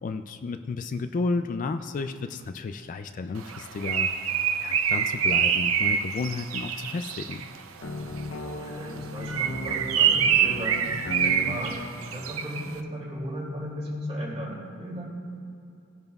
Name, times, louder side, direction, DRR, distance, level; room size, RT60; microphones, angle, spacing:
voice 1, 0.0-7.5, left 3 dB, 40° left, 8 dB, 0.3 m, -32 dB
Bird, 3.5-7.6 9.2-12.7, right 8 dB, 85° right, 0.6 m, -25 dB
sound 1, 7.8-11.6, left 2 dB, 85° left, 0.8 m, -36 dB
voice 2, 8.4-15.1, equal, 30° right, -4 dB, 2.7 m, -36 dB
18.0 x 10.5 x 2.4 m, 2.6 s
head